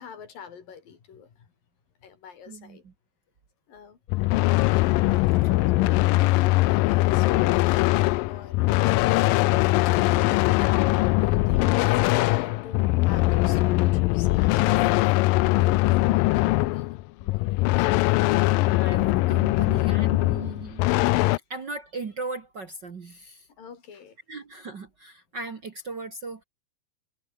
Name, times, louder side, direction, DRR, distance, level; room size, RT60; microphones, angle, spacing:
voice 1, 0.0-1.5 2.0-2.8 3.7-4.0 4.7-4.9 5.7-8.8 9.5-10.9 11.2-15.0 15.5-17.0 17.2-17.7 23.6-24.2, left 7 dB, 75° left, 5.1 m, -43 dB
voice 2, 2.5-2.9 5.4-5.5 8.6-8.8 18.4-20.9 21.5-23.5 24.3-26.4, right 3 dB, 40° right, 1.8 m, -38 dB
sound 1, 4.1-21.4, left 19 dB, 90° left, 2.4 m, -21 dB
sound 2, 4.6-11.0 11.5-12.1, right 2 dB, 15° right, 4.4 m, -49 dB
omnidirectional pair, 4.0 m